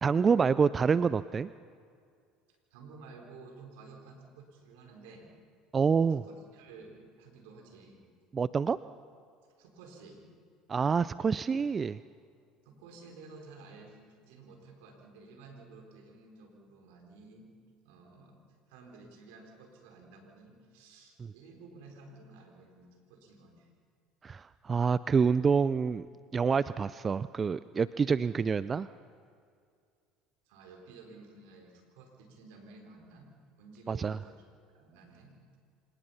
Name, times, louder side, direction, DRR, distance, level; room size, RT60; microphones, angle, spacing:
voice 1, 0.0-1.5 5.7-6.2 8.3-8.8 10.7-12.0 24.2-26.1 26.3-28.9 33.9-34.2, right 5 dB, 30° right, 16 dB, 0.4 m, -27 dB
voice 2, 2.7-5.3 6.2-8.0 9.6-10.3 12.6-17.5 17.8-18.4 18.7-23.7 30.4-33.3 33.6-34.4 34.7-35.4, right 3 dB, 75° right, 2 dB, 4.2 m, -53 dB
26.5 x 18.5 x 5.7 m, 2.2 s
hypercardioid pair, 80°, 0 cm